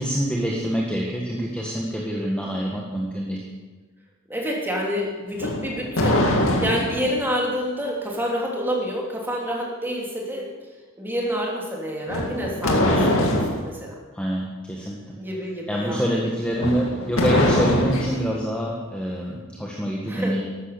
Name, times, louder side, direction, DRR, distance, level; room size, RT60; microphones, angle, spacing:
voice 1, 0.0-3.4 12.8-13.1 14.1-15.2 15.7-20.4, equal, 5° left, -3 dB, 1.7 m, -26 dB
voice 2, 4.3-10.5 11.0-13.0 13.3-14.0 15.2-16.2 20.1-20.4, equal, 10° right, -2 dB, 3.3 m, -28 dB
sound 1, 5.3-7.1 12.1-13.7 16.5-18.2, left 1 dB, 80° left, 2.2 m, -22 dB
14.0 x 12.5 x 6.9 m, 1.3 s
head